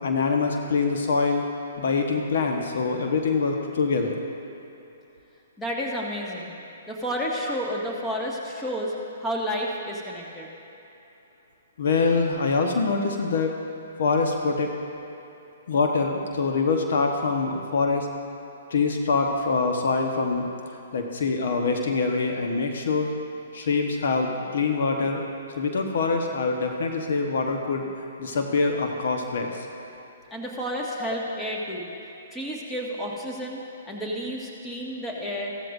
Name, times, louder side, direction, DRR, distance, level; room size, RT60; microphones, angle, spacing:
voice 1, 0.0-1.4 1.8-4.1 11.8-13.6 14.0-14.7 15.7-18.1 18.7-20.5 20.9-23.1 23.5-25.2 25.6-27.9 28.2-29.7, left 4 dB, 65° left, 3 dB, 1.2 m, -24 dB
voice 2, 5.6-6.5 6.9-8.9 9.2-10.5 30.3-31.9 32.3-35.5, equal, 10° left, -3 dB, 1.8 m, -31 dB
15.5 x 14.0 x 2.6 m, 2.9 s
hypercardioid pair, 130°, 0 cm